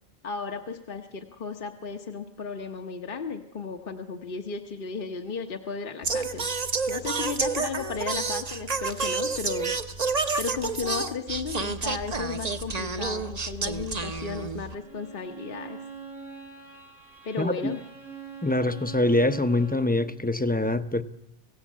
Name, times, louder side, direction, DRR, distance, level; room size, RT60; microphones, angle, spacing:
voice 1, 0.2-9.7 10.4-15.8 17.2-17.8, left 5 dB, 55° left, 4 dB, 1.2 m, -34 dB
Singing, 6.0-14.7, right 4 dB, 40° right, 1.0 m, -30 dB
Bowed string instrument, 14.7-20.1, right 5 dB, 90° right, 4.4 m, -43 dB
voice 2, 18.4-21.0, left 1 dB, 10° left, 10 dB, 0.7 m, -24 dB
27.5 x 16.5 x 7.4 m, 0.85 s
omnidirectional pair, 1.1 m